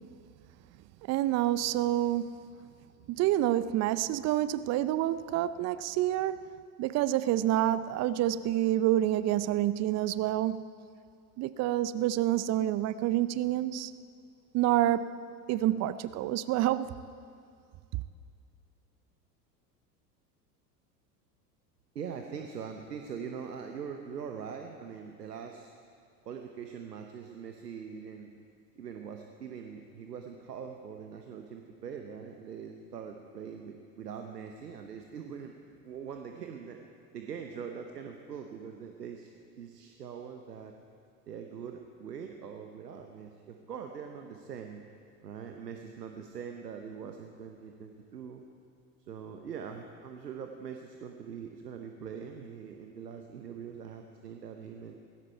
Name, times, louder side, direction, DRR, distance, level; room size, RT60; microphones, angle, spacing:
voice 1, 1.1-2.3 3.1-6.4 6.8-10.7 11.4-13.9 14.5-15.1 15.5-16.9, right 13 dB, 35° right, 0.5 m, -28 dB
voice 2, 21.9-25.8 26.3-28.4 28.8-36.8 37.1-40.7 41.3-44.8 45.2-48.4 49.1-55.0, right 7 dB, 85° right, 1.0 m, -42 dB
18.0 x 16.0 x 4.6 m
hypercardioid pair, 80°, 47 cm